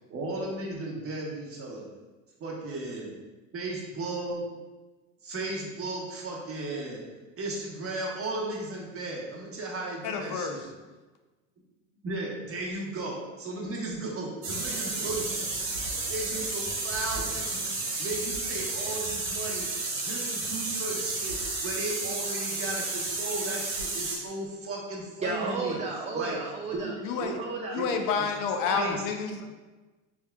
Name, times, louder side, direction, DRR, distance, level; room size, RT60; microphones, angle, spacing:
voice 1, 0.1-1.9 2.4-3.1 3.5-4.4 5.2-7.0 7.4-10.7 12.0-15.5 15.8-17.7 18.0-19.7 19.9-21.4 21.6-25.8 26.1-26.4 26.7-27.3 27.8-27.9 28.2-28.3 28.7-29.0, right 2 dB, 35° right, -2 dB, 1.1 m, -35 dB
voice 2, 10.0-10.7 27.0-27.4 27.7-29.5, left 5 dB, 55° left, 5 dB, 0.6 m, -29 dB
sound 1, 14.4-24.2, right 3 dB, 85° right, 1.2 m, -32 dB
voice 3, 25.2-26.9 27.3-27.8 28.6-28.9, right 3 dB, 20° right, 0 dB, 0.3 m, -33 dB
4.5 x 3.5 x 2.3 m, 1.2 s
supercardioid pair, 95°, 39 cm